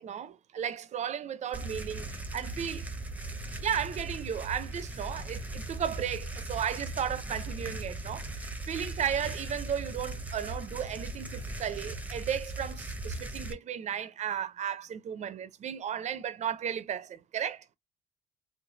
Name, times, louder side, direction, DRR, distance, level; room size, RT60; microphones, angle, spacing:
voice 1, 0.0-2.1 2.3-2.8 3.6-17.6, right 9 dB, 45° right, 0.5 m, -34 dB
sound 1, 1.5-13.5, right 2 dB, 10° right, 0.7 m, -38 dB
3.2 x 2.1 x 3.9 m
cardioid pair, 110°, 17 cm